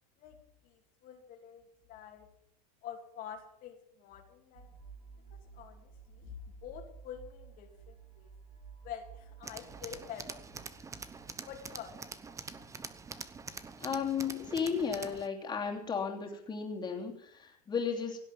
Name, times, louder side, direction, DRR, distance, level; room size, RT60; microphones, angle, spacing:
voice 1, 0.6-2.3 2.8-4.7 5.3-8.3 8.8-10.7 11.5-12.2, left 9 dB, 45° left, 3 dB, 2.6 m, -47 dB
sound 1, 4.5-13.2, right 6 dB, 85° right, 7.0 m, -54 dB
Tools, 9.4-15.3, right 4 dB, 15° right, 0.9 m, -45 dB
voice 2, 13.8-18.2, left 6 dB, 20° left, 2 dB, 3.1 m, -34 dB
17.0 x 8.3 x 7.6 m, 0.72 s
supercardioid pair, 120°, 20 cm